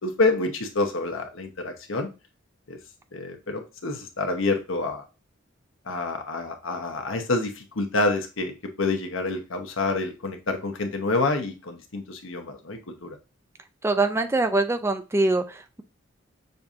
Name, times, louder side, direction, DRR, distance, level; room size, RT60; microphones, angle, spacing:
voice 1, 0.0-2.1 2.7-2.8 3.1-5.0 5.9-13.2, left 3 dB, 85° left, 5 dB, 1.0 m, -27 dB
voice 2, 13.8-15.4, right 2 dB, 15° right, 8 dB, 0.3 m, -23 dB
6.6 x 2.8 x 2.4 m, 0.29 s
head